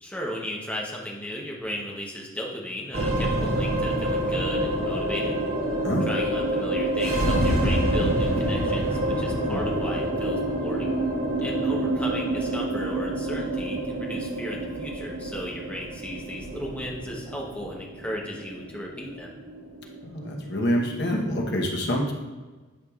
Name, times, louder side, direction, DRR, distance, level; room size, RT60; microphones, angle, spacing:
voice 1, 0.0-5.4 6.0-11.0 11.4-19.3, equal, 5° left, -2 dB, 0.9 m, -35 dB
sound 1, 2.9-21.4, right 1 dB, 90° right, 1.6 m, -27 dB
voice 2, 20.0-22.1, equal, 55° left, 0 dB, 1.0 m, -26 dB
10.0 x 4.7 x 2.4 m, 1.3 s
head